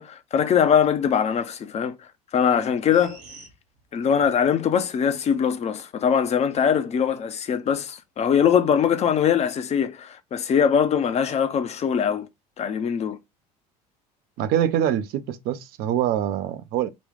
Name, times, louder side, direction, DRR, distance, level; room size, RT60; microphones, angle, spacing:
voice 1, 0.0-1.9 2.3-3.2 3.9-12.3 12.6-13.2, left 7 dB, 35° left, 0.6 m, -22 dB
sound 1, 2.9-4.4 4.8-4.9, right 4 dB, 75° right, 1.2 m, -47 dB
voice 2, 14.4-16.9, right 10 dB, 55° right, 0.5 m, -24 dB
3.9 x 2.2 x 3.4 m
figure-of-eight pair, 65°, 19 cm